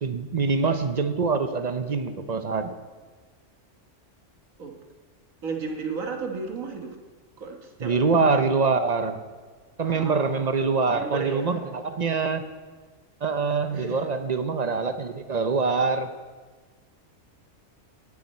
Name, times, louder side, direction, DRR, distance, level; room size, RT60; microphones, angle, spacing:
voice 1, 0.0-2.7 7.8-9.2 9.8-12.5 13.2-16.1, right 4 dB, 40° right, 8 dB, 0.6 m, -24 dB
voice 2, 5.4-7.0 7.4-8.2 9.8-10.5 10.9-11.7 13.7-14.1, right 4 dB, 85° right, 3 dB, 1.8 m, -34 dB
17.5 x 8.5 x 4.3 m, 1.4 s
omnidirectional pair, 1.4 m